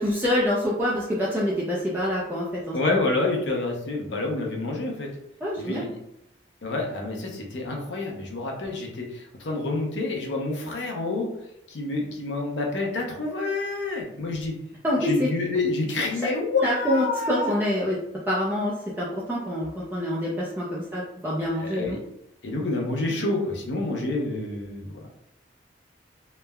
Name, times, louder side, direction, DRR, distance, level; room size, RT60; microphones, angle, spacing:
voice 1, 0.0-3.0 5.4-5.9 14.8-15.3 16.6-18.0 18.3-22.0, left 1 dB, 10° right, -6 dB, 0.4 m, -26 dB
voice 2, 2.7-5.1 5.6-6.0 6.6-11.3 11.7-14.5 15.0-17.5 21.6-22.0 22.4-25.1, left 2 dB, 85° left, 0 dB, 0.6 m, -28 dB
3.1 x 2.1 x 2.2 m, 0.83 s
head